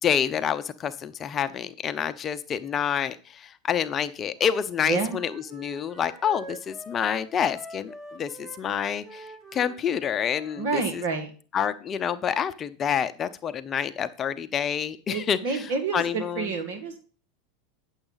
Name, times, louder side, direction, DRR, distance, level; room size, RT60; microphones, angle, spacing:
voice 1, 0.0-11.0 11.5-16.5, left 8 dB, 30° left, 11 dB, 0.6 m, -28 dB
Wind instrument woodwind instrument, 4.3-10.7, right 1 dB, 25° right, 4.8 m, -45 dB
voice 2, 10.6-11.3 15.1-17.0, right 4 dB, 65° right, 6 dB, 1.9 m, -28 dB
9.9 x 7.1 x 4.0 m, 0.38 s
hypercardioid pair, 100°, 0 cm